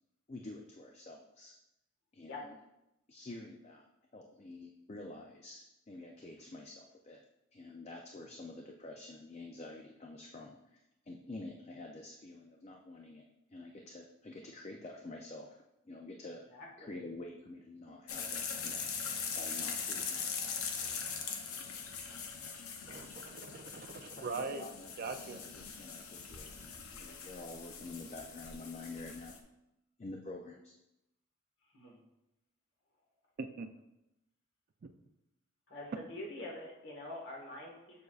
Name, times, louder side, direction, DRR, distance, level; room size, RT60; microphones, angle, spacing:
voice 1, 0.3-1.5 2.1-2.6 3.1-3.8 4.1-7.2 7.5-13.2 13.5-16.5 16.8-20.3 24.0-29.4 30.0-30.8, left 2 dB, 30° left, 2 dB, 0.4 m, -48 dB
voice 2, 16.5-17.0 31.7-32.0 35.7-38.0, left 2 dB, 50° left, -1 dB, 1.5 m, -45 dB
sound 1, 18.1-29.4, left 6 dB, 80° left, 0.7 m, -41 dB
voice 3, 22.9-24.6 25.0-25.4 33.4-33.7 34.8-34.9, right 4 dB, 45° right, 8 dB, 0.3 m, -41 dB
6.9 x 6.4 x 2.4 m, 0.90 s
head